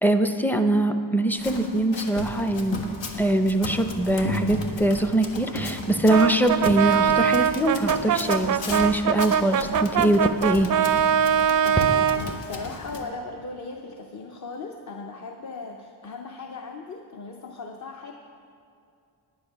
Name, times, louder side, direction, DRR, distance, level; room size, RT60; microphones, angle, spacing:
voice 1, 0.0-2.8 3.2-10.7, right 1 dB, 5° left, 7 dB, 0.5 m, -23 dB
Run, 1.4-13.0, left 2 dB, 85° left, 1.4 m, -35 dB
Brass instrument, 6.1-12.3, right 8 dB, 45° right, 0.4 m, -22 dB
voice 2, 11.6-18.1, left 3 dB, 40° left, 3 dB, 0.7 m, -38 dB
10.5 x 9.3 x 5.8 m, 2.5 s
cardioid pair, 115°, 44 cm